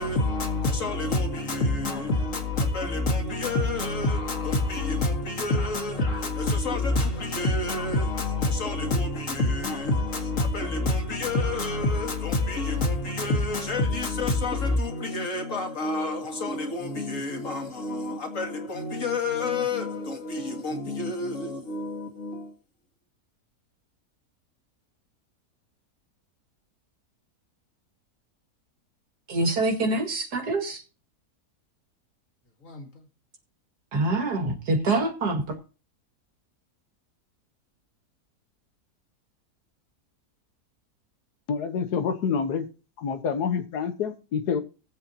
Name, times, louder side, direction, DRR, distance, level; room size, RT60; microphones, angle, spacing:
voice 1, 0.0-22.5 32.6-32.8, left 2 dB, 55° left, 2.3 m, -27 dB
voice 2, 29.3-30.8 33.9-35.6, right 2 dB, 80° right, 2.6 m, -25 dB
voice 3, 41.5-42.7 43.0-44.6, left 6 dB, 85° left, 1.6 m, -27 dB
18.5 x 8.0 x 2.8 m
omnidirectional pair, 1.7 m